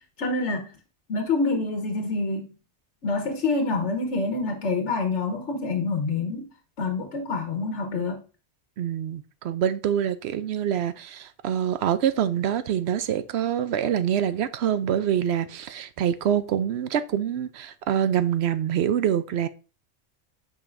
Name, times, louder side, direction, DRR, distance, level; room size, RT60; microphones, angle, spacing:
voice 1, 0.2-0.7 1.1-2.5 3.0-6.5 6.8-8.2, left 3 dB, 80° left, 1.4 m, -27 dB
voice 2, 8.8-19.5, right 9 dB, 70° right, 0.8 m, -25 dB
8.8 x 5.3 x 2.5 m
omnidirectional pair, 1.2 m